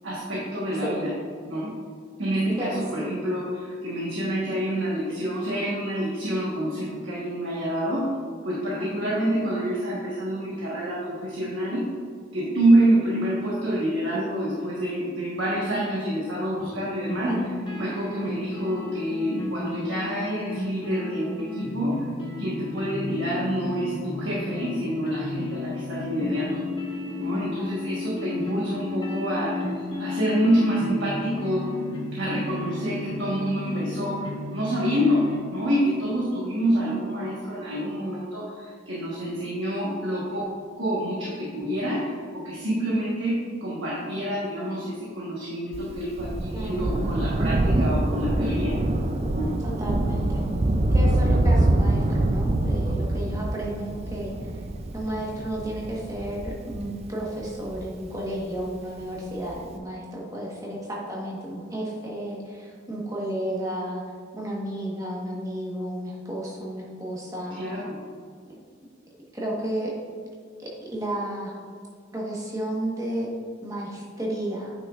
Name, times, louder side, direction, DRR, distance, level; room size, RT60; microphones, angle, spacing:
voice 1, 0.0-1.1 1.4-1.7 2.2-8.1 8.4-11.8 12.3-17.4 17.8-22.1 22.4-26.6 27.2-29.7 30.0-31.7 32.1-40.4 40.7-48.8 49.3-49.5 67.6-68.0, right 1 dB, 75° right, -6 dB, 1.3 m, -27 dB
sound 1, 17.1-35.4, left 2 dB, 25° left, 1.1 m, -33 dB
Thunder, 45.7-58.6 59.5-59.6, right 1 dB, 30° right, 0.4 m, -25 dB
voice 2, 46.5-46.9 49.6-50.5 50.9-54.6 54.9-64.0 64.3-67.6 69.3-69.9 70.6-71.5 72.1-73.3 73.6-74.7, right 1 dB, 15° right, -4 dB, 1.2 m, -32 dB
9.0 x 6.1 x 2.4 m, 2.1 s
head